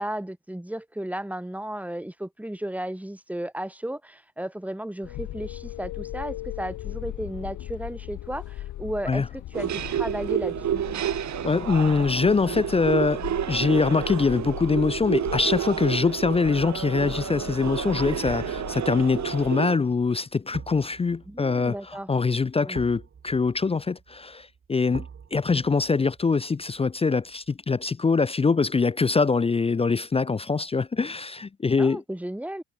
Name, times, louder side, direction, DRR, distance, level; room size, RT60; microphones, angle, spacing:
voice 1, 0.0-10.8 21.3-22.1 22.6-22.8 31.8-32.6, right 1 dB, 5° right, 5.8 m, -34 dB
sound 1, 5.0-19.5, left 14 dB, 75° left, 1.6 m, -38 dB
sound 2, 9.5-19.8, right 10 dB, 65° right, 4.1 m, -30 dB
voice 2, 11.4-13.2 13.5-32.0, left 4 dB, 20° left, 0.5 m, -24 dB
sound 3, 16.7-16.8 18.2-29.2 29.6-29.7, right 6 dB, 45° right, 6.2 m, -47 dB
cardioid pair, 90°, 30 cm